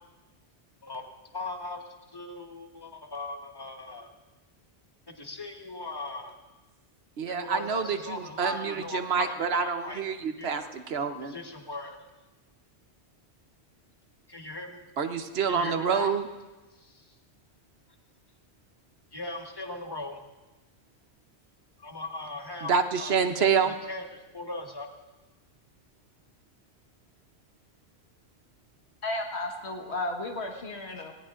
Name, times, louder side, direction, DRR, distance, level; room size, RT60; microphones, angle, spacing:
voice 1, 1.3-1.8 2.1-4.1 5.2-6.3 7.3-10.0 10.4-10.7 11.2-12.0 14.3-14.8 15.5-16.1 19.1-20.2 21.8-24.0 24.3-24.9, left 2 dB, 20° left, 3 dB, 1.2 m, -38 dB
voice 2, 7.2-11.3 15.0-16.3 22.6-23.7, right 6 dB, 70° right, 8 dB, 1.1 m, -27 dB
voice 3, 29.0-31.1, left 2 dB, 75° left, 2 dB, 1.8 m, -33 dB
18.5 x 17.5 x 2.5 m, 1.1 s
omnidirectional pair, 1.1 m